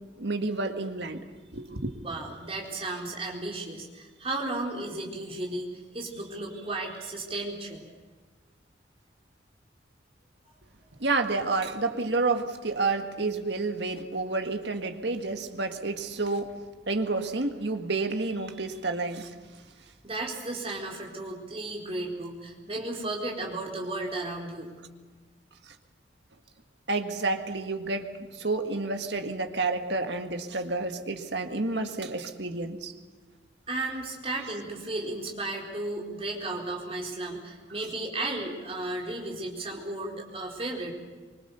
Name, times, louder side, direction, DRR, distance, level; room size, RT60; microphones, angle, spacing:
voice 1, 0.2-1.2 1.5-2.0 11.0-16.5 16.9-19.3 26.9-32.9, right 3 dB, 65° right, 6 dB, 1.9 m, -30 dB
voice 2, 2.0-7.8 20.0-24.7 33.7-40.9, right 2 dB, 30° right, 0 dB, 4.2 m, -34 dB
24.5 x 23.5 x 7.0 m, 1.4 s
head